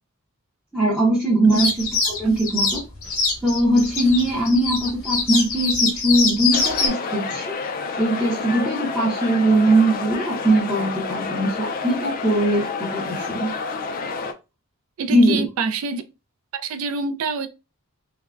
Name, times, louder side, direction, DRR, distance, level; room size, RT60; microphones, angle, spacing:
voice 1, 0.7-2.8 3.4-7.6 8.0-13.5 15.1-15.4, right 1 dB, 5° right, 0.6 m, -20 dB
sound 1, 1.5-6.9, left 4 dB, 80° left, 0.9 m, -23 dB
sound 2, 6.5-14.3, left 4 dB, 40° left, 0.3 m, -29 dB
voice 2, 15.0-16.0 16.5-17.5, right 4 dB, 75° right, 0.4 m, -26 dB
3.3 x 2.1 x 2.3 m
head